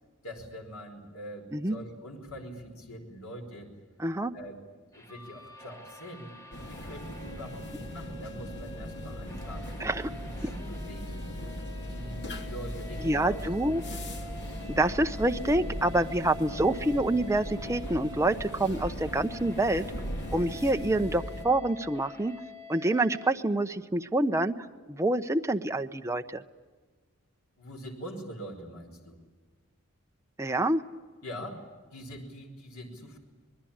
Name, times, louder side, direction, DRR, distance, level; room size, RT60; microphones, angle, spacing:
voice 1, 0.2-3.8 4.3-4.6 4.9-6.3 6.7-9.7 10.3-11.3 11.9-13.4 27.6-29.2 31.2-33.2, equal, 70° left, 3 dB, 5.0 m, -43 dB
voice 2, 4.0-4.3 9.8-10.1 10.4-10.5 13.0-13.8 14.8-19.9 20.3-22.3 22.7-24.5 24.9-26.4 30.4-30.8, right 2 dB, 15° right, 6 dB, 0.8 m, -27 dB
sound 1, 4.9-23.3, left 3 dB, 15° left, 2.2 m, -47 dB
sound 2, 6.5-21.4, equal, 55° left, 2.6 m, -38 dB
26.5 x 21.0 x 8.8 m, 1.4 s
head